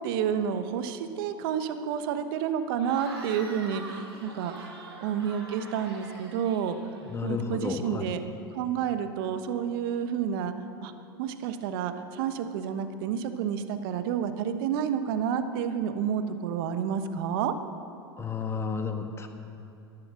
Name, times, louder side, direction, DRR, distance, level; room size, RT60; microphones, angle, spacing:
voice 1, 0.0-6.8 7.2-8.2 8.5-10.5 10.8-10.9 11.2-17.5, right 8 dB, 60° right, 9 dB, 1.1 m, -30 dB
Cheering / Crowd, 2.8-7.4, right 2 dB, 85° right, 3.3 m, -44 dB
voice 2, 7.1-8.1 18.2-19.3, left 5 dB, 20° left, 6 dB, 1.4 m, -32 dB
11.5 x 11.0 x 7.4 m, 2.7 s
hypercardioid pair, 95°, 13 cm